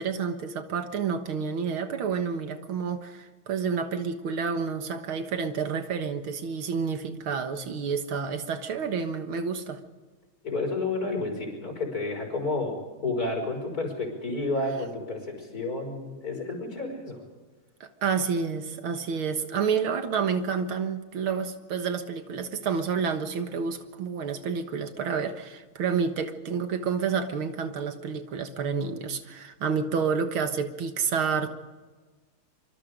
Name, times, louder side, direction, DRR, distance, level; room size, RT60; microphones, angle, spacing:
voice 1, 0.0-9.8 17.8-31.5, right 6 dB, 80° right, 8 dB, 2.3 m, -29 dB
voice 2, 10.4-17.2, left 2 dB, 45° left, 2 dB, 5.9 m, -31 dB
25.5 x 24.5 x 5.1 m, 1.4 s
omnidirectional pair, 2.3 m